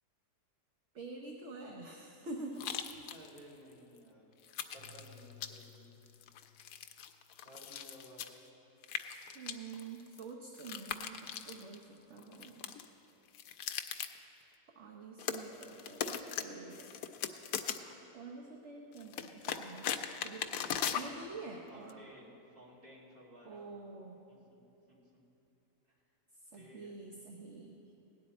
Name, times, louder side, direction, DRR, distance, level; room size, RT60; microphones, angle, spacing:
voice 1, 0.9-2.7 4.5-4.6 9.3-12.7 14.7-16.9 18.1-19.9 20.2-22.0 23.4-24.2 26.4-27.8, right 3 dB, 50° right, 0 dB, 1.0 m, -47 dB
sound 1, 2.6-3.4 3.7-3.8 4.4-5.8 6.1-8.4 8.8-11.8 12.2-12.9 13.3-14.2 15.2-16.4 16.7-17.9 19.0-21.1 21.9-22.0, left 9 dB, 75° left, 1.0 m, -39 dB
voice 2, 3.1-4.3 4.7-6.0 7.4-8.3 21.7-23.7 24.3-24.6 24.9-25.2 25.8-26.0 26.5-27.0, equal, 25° right, -5 dB, 2.3 m, -56 dB
Keyboard (musical), 4.7-7.0, left 5 dB, 75° right, 1.8 m, -58 dB
17.5 x 10.5 x 4.2 m, 2.9 s
omnidirectional pair, 1.8 m